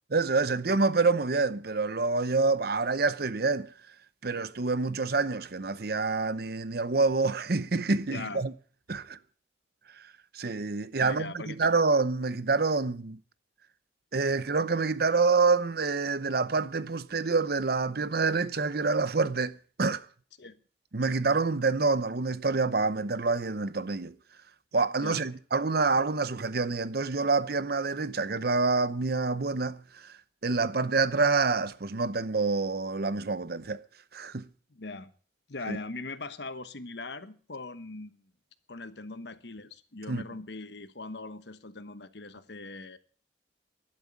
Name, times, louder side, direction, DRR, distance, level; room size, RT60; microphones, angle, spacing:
voice 1, 0.1-3.7 4.2-8.5 8.9-9.2 10.3-13.2 14.1-20.1 20.9-24.1 24.7-30.1 30.4-33.8 34.1-34.4 35.7-35.8 40.1-40.2, right 4 dB, 55° right, 0.7 m, -27 dB
voice 2, 8.1-8.4 11.0-11.6 20.4-20.6 25.0-25.2 34.7-35.1 35.5-38.2 38.7-43.0, left 3 dB, 65° left, 1.2 m, -40 dB
12.0 x 11.0 x 8.6 m
head